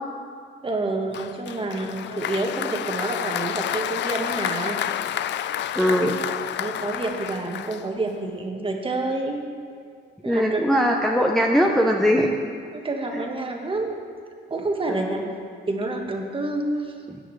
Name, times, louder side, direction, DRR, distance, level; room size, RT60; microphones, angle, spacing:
voice 1, 0.6-4.8 6.6-9.4 10.2-10.6 12.7-14.0 14.5-15.3 15.7-16.9, right 2 dB, 25° right, 2 dB, 1.4 m, -28 dB
Applause, 1.1-8.2, left 11 dB, 65° left, 0.4 m, -30 dB
voice 2, 5.8-6.2 10.3-12.3 13.1-13.2 14.9-15.3 17.1-17.2, equal, ahead, 0 dB, 0.7 m, -21 dB
14.5 x 8.9 x 3.2 m, 2.2 s
cardioid pair, 90°, 20 cm